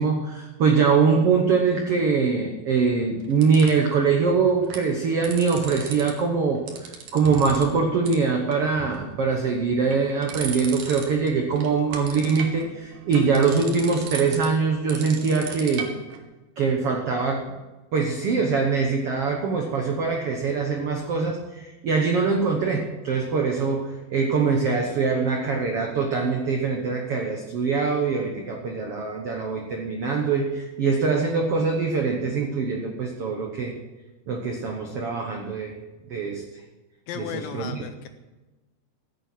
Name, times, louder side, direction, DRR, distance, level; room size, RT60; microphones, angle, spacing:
voice 1, 0.0-15.9 16.6-17.4 17.9-33.7 34.3-35.8 36.1-36.4 37.2-37.8, right 5 dB, 80° right, 2 dB, 1.3 m, -23 dB
sound 1, 2.7-3.9 4.5-4.9 5.1-6.1 6.4-7.7 8.1-8.2 8.5-9.1 9.6-11.3 11.6-16.2, right 7 dB, 60° right, 2.8 m, -36 dB
voice 2, 37.1-38.1, left 9 dB, 85° left, 9 dB, 2.1 m, -35 dB
15.0 x 8.9 x 6.1 m, 1.1 s
omnidirectional pair, 4.5 m